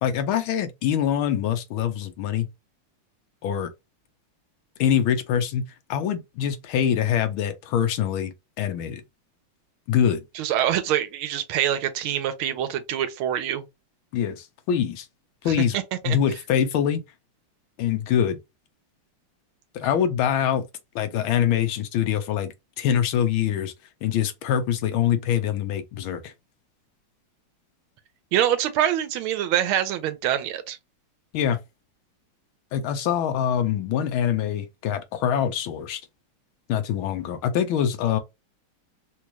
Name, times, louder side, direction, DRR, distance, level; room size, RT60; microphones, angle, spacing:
voice 1, 0.0-2.5 3.4-3.7 4.8-5.6 5.9-9.0 9.9-10.2 14.1-15.1 15.4-15.8 16.0-17.0 17.8-18.4 19.7-20.6 20.9-23.7 24.0-26.3 31.3-31.6 32.7-36.0 36.7-38.2, left 9 dB, 75° left, 1.5 m, -24 dB
voice 2, 10.3-13.7 15.5-16.2 28.3-30.8, right 11 dB, 90° right, 1.5 m, -25 dB
4.1 x 2.3 x 2.9 m
omnidirectional pair, 2.3 m